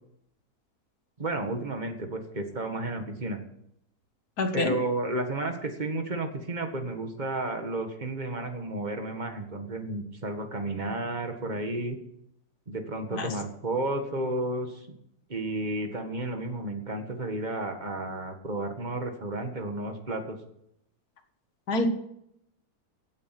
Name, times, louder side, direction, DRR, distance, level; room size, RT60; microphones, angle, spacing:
voice 1, 1.2-3.4 4.5-12.0 12.7-14.8 15.3-20.4, right 2 dB, 30° right, 5 dB, 1.8 m, -32 dB
voice 2, 4.4-4.7 13.1-13.3 21.7-21.9, left 2 dB, 70° left, 4 dB, 2.1 m, -26 dB
16.0 x 8.7 x 6.0 m, 0.76 s
omnidirectional pair, 1.7 m